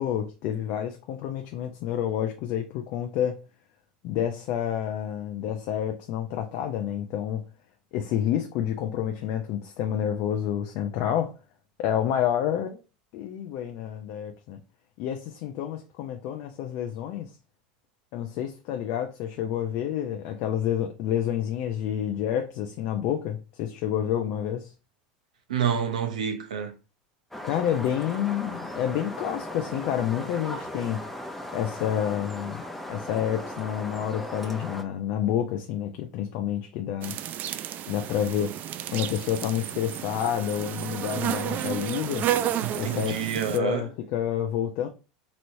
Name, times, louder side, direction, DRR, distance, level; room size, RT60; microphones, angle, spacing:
voice 1, 0.0-3.4 4.0-7.4 7.9-11.4 11.8-12.8 13.1-14.6 15.0-17.3 18.1-24.7 27.4-31.0 31.5-32.6 32.9-37.2 37.9-38.5 38.9-42.3 42.8-44.9, left 10 dB, 60° left, 0.5 m, -29 dB
voice 2, 25.5-26.7 42.6-43.8, right 8 dB, 90° right, 0.7 m, -28 dB
sound 1, 27.3-34.8, left 1 dB, 5° left, 0.6 m, -37 dB
sound 2, 37.0-43.6, right 11 dB, 45° right, 0.3 m, -31 dB
3.0 x 3.0 x 2.6 m
hypercardioid pair, 95°, 4 cm